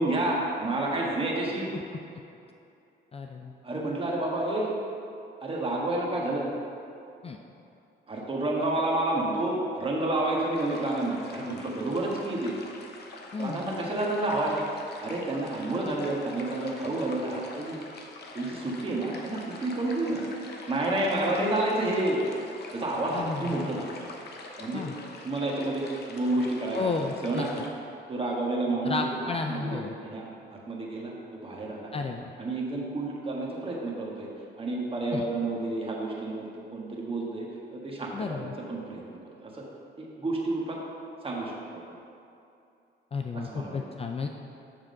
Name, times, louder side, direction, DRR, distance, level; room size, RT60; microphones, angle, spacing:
voice 1, 0.0-1.7 3.6-4.7 5.4-6.5 8.1-12.6 13.4-17.9 18.3-20.2 20.7-22.2 22.7-24.0 24.6-24.9 25.2-27.6 28.1-31.9 32.4-34.3 34.6-39.6 40.0-40.8 41.2-42.0 43.3-43.8, right 2 dB, 30° right, -3 dB, 1.5 m, -30 dB
voice 2, 3.1-3.5 7.2-7.4 13.3-13.6 23.1-23.5 24.7-24.9 26.7-27.5 28.8-29.9 31.9-32.3 35.1-35.2 38.1-38.6 43.1-44.3, left 4 dB, 30° left, 3 dB, 0.4 m, -32 dB
sound 1, 10.5-27.7, left 3 dB, 55° left, 0.9 m, -45 dB
7.5 x 3.6 x 6.4 m, 2.7 s
cardioid pair, 90°, 20 cm